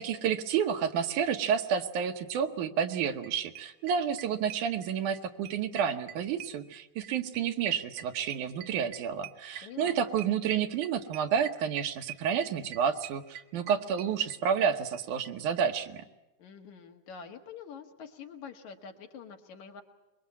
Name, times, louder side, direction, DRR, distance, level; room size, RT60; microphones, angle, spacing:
voice 1, 0.0-16.0, right 7 dB, 80° right, 7 dB, 2.6 m, -30 dB
sound 1, 2.9-3.0 3.2-3.3 3.5-5.2 5.4-14.7 14.9-15.0 15.2-15.3 15.6-15.7, right 11 dB, 65° right, 1.9 m, -44 dB
voice 2, 9.6-10.0 16.4-19.8, left 6 dB, 70° left, 4 dB, 3.1 m, -46 dB
25.0 x 22.5 x 8.4 m, 1.0 s
omnidirectional pair, 3.5 m